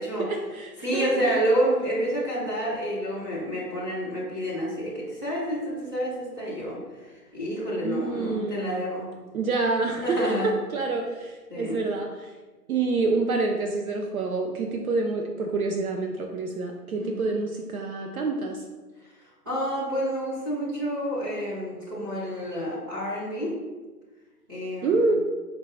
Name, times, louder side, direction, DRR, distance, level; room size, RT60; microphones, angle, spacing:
voice 1, 0.2-1.1 7.8-8.8 9.3-12.3 12.7-18.6 24.8-25.2, right 3 dB, 65° right, 2 dB, 0.6 m, -27 dB
voice 2, 0.8-6.8 7.3-9.1 10.0-10.5 11.5-11.8 17.0-17.2 19.5-23.5 24.5-25.1, equal, 15° right, -9 dB, 0.6 m, -28 dB
4.5 x 2.2 x 3.9 m, 1.3 s
hypercardioid pair, 145°, 47 cm